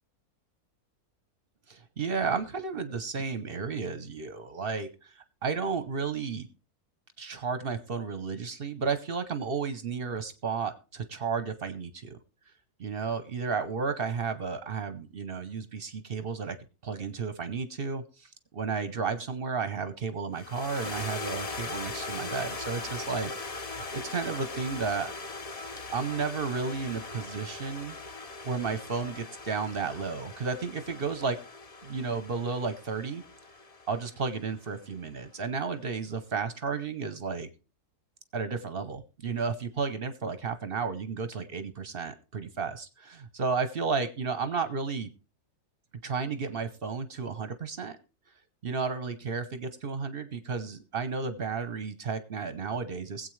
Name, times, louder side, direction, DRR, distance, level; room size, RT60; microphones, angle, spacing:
voice 1, 1.7-6.5 7.2-12.2 12.8-16.6 16.8-25.1 25.9-28.0 28.4-31.4 31.8-33.2 33.9-37.5 38.3-45.1 46.0-48.0 48.6-53.3, right 5 dB, 45° right, 11 dB, 0.8 m, -33 dB
sound 1, 20.4-34.8, left 3 dB, 45° left, 0.4 m, -40 dB
21.0 x 8.1 x 3.2 m, 0.34 s
omnidirectional pair, 1.7 m